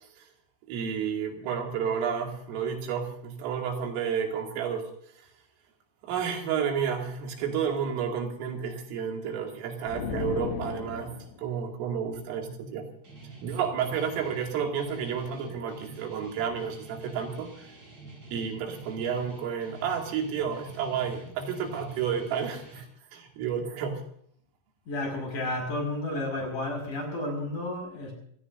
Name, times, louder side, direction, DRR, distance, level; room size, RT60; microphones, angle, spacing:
voice 1, 0.7-4.9 6.0-12.9 13.4-17.7 18.3-22.9 23.1-24.0, right 7 dB, 90° right, 2 dB, 5.0 m, -31 dB
sound 1, 9.9-11.4, left 5 dB, 70° left, 3.9 m, -35 dB
Guitar, 13.0-22.8, right 3 dB, 25° right, 5.3 m, -48 dB
voice 2, 24.9-28.1, left 1 dB, 40° left, 2 dB, 6.7 m, -32 dB
26.5 x 16.5 x 2.7 m, 0.64 s
omnidirectional pair, 5.7 m